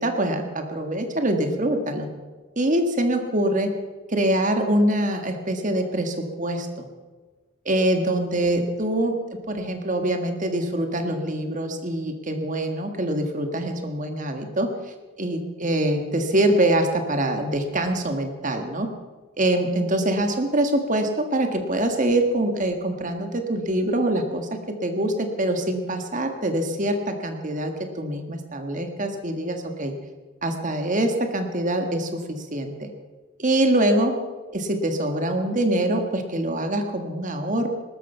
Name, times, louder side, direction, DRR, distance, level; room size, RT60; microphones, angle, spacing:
voice 1, 0.0-2.1 2.6-3.7 4.1-6.9 7.7-9.2 9.5-14.7 15.2-18.9 19.4-24.5 24.8-29.9 30.4-32.9 33.4-34.1 34.5-37.7, right 1 dB, 35° right, 5 dB, 1.7 m, -24 dB
20.0 x 12.5 x 5.7 m, 1.4 s
head